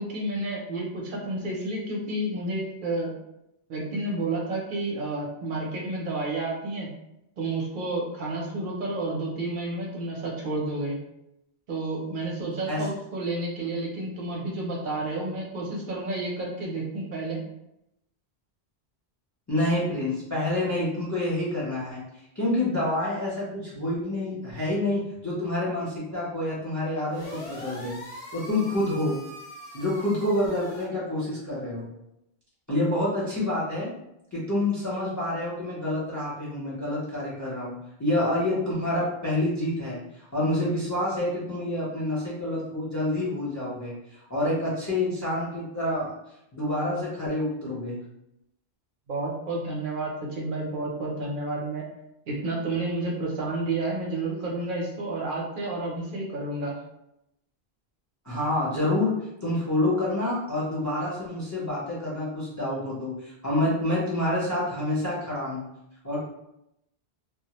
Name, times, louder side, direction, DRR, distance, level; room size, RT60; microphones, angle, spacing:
voice 1, 0.0-3.1 3.7-6.9 7.4-11.0 11.7-17.4 49.1-51.8 52.3-56.7, right 2 dB, 60° right, -2 dB, 0.6 m, -30 dB
voice 2, 19.5-22.0 22.4-28.0 28.3-29.2 29.7-31.9 32.7-33.9 34.3-43.9 44.3-46.1 46.5-48.0 58.2-59.2 59.4-65.7 66.0-66.2, left 1 dB, 25° left, -7 dB, 0.4 m, -27 dB
sound 1, 27.1-30.8, left 2 dB, 75° left, 0.9 m, -42 dB
2.2 x 2.0 x 2.8 m, 0.83 s
omnidirectional pair, 1.1 m